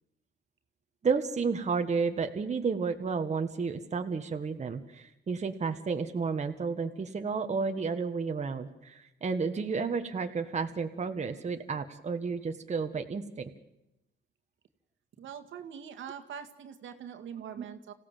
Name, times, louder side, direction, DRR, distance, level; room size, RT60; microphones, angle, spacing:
voice 1, 1.0-13.5, right 5 dB, 35° right, 5 dB, 1.5 m, -31 dB
voice 2, 15.2-17.9, right 8 dB, 75° right, 6 dB, 2.0 m, -43 dB
26.5 x 16.5 x 7.4 m, 0.91 s
cardioid pair, 90°, 20 cm